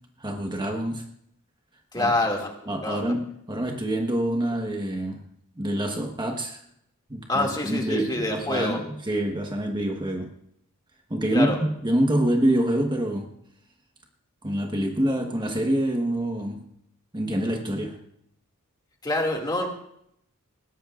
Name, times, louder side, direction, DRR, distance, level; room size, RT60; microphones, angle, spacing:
voice 1, 0.2-1.0 1.9-2.1 2.7-5.2 5.6-6.6 7.1-10.3 11.1-13.3 14.4-16.6 17.1-18.0, right 1 dB, 20° right, 2 dB, 1.3 m, -26 dB
voice 2, 1.9-3.1 7.3-8.8 11.3-11.6 19.0-19.7, left 1 dB, 20° left, 1 dB, 2.4 m, -26 dB
21.0 x 17.5 x 2.5 m, 0.72 s
head